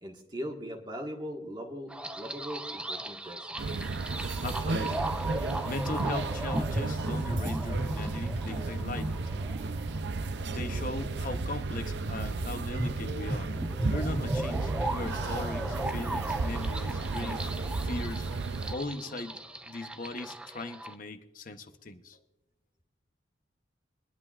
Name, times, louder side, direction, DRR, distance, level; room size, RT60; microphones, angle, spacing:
voice 1, 0.0-3.6, equal, 25° right, 1 dB, 1.5 m, -40 dB
sound 1, 1.9-20.9, right 1 dB, 5° right, 0.4 m, -37 dB
sound 2, 3.6-18.7, right 3 dB, 65° right, 0.5 m, -33 dB
voice 2, 4.4-5.0 5.7-9.2 10.5-13.5 13.9-17.5 17.8-18.3 18.7-22.2, left 2 dB, 45° left, 8 dB, 0.8 m, -39 dB
23.0 x 11.0 x 2.4 m, 1.1 s
head